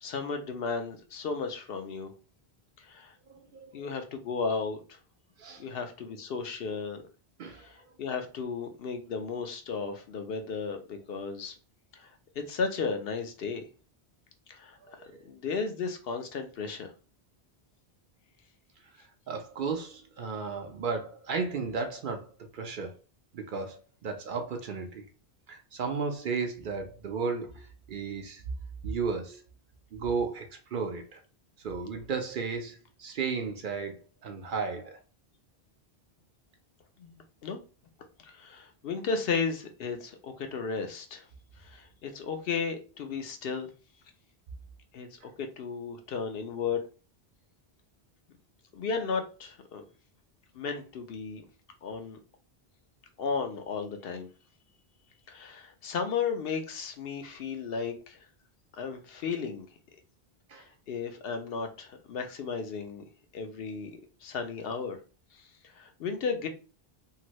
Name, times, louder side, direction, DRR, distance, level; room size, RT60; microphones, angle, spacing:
voice 1, 0.0-2.1 2.8-3.1 3.7-5.0 5.6-7.0 7.5-11.5 11.9-13.6 14.5-14.8 15.3-16.9 37.0-37.6 38.2-41.3 41.6-43.7 44.9-46.9 48.7-49.8 50.5-51.4 51.8-52.2 53.2-54.3 55.3-58.3 58.8-59.7 60.6-63.0 63.3-63.9 64.2-65.0 65.3-65.4 65.7-66.5, left 5 dB, 70° left, 0.8 m, -34 dB
voice 2, 3.3-3.9 5.4-5.7 7.4-7.9 14.8-15.2 19.3-23.0 23.3-25.0 25.5-28.4 28.8-29.4 29.9-31.2 31.6-35.0 45.2-45.3 60.5-60.7, right 5 dB, 60° right, 0.6 m, -34 dB
2.8 x 2.6 x 3.0 m
omnidirectional pair, 1.1 m